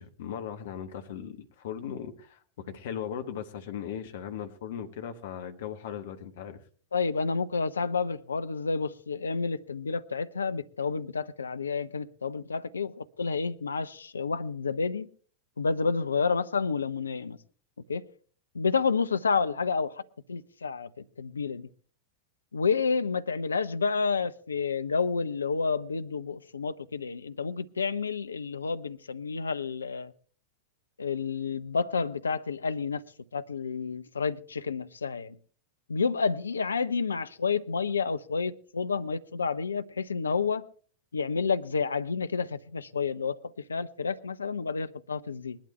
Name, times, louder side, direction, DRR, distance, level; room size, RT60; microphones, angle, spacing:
voice 1, 0.0-6.6, left 8 dB, 55° left, 1.4 m, -38 dB
voice 2, 6.9-15.1 15.6-17.4 17.9-18.0 18.5-20.0 20.3-20.9 21.2-21.7 22.5-30.1 31.0-33.0 33.3-35.4 35.9-40.6 41.1-43.4 43.7-45.6, left 5 dB, 75° left, 0.6 m, -30 dB
20.0 x 11.5 x 3.3 m
figure-of-eight pair, 90°, 0 cm